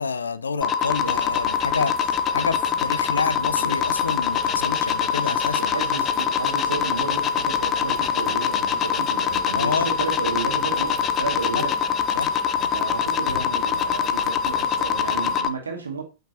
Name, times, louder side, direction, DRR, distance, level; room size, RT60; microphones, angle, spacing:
voice 1, 0.0-5.9 9.5-9.9 11.5-11.7 12.1-12.7 13.3-13.4, left 5 dB, 75° left, 0.5 m, -28 dB
sound 1, 0.6-15.5, left 7 dB, 30° left, 0.6 m, -24 dB
Bird vocalization bird call bird song / Rain, 0.8-15.4, right 1 dB, ahead, 1.9 m, -43 dB
voice 2, 5.3-11.8 12.7-16.0, right 5 dB, 75° right, 2.0 m, -33 dB
8.3 x 6.0 x 2.8 m
figure-of-eight pair, 90°, 0 cm